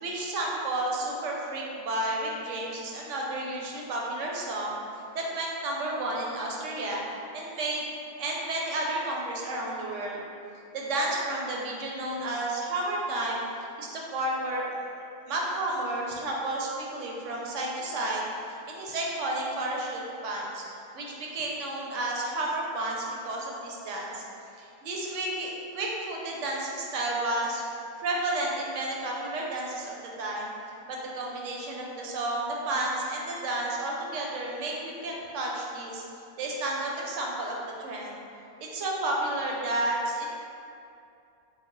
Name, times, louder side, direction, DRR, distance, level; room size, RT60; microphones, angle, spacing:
voice 1, 0.0-4.8 5.1-7.0 7.3-7.8 8.2-10.2 10.7-13.4 13.8-14.7 15.3-18.2 18.5-24.2 24.6-27.6 28.0-29.9 30.2-30.5 30.9-36.0 36.4-38.2 38.7-40.3, right 2 dB, 65° right, -2 dB, 0.9 m, -31 dB
3.9 x 2.1 x 3.8 m, 2.6 s
omnidirectional pair, 1.5 m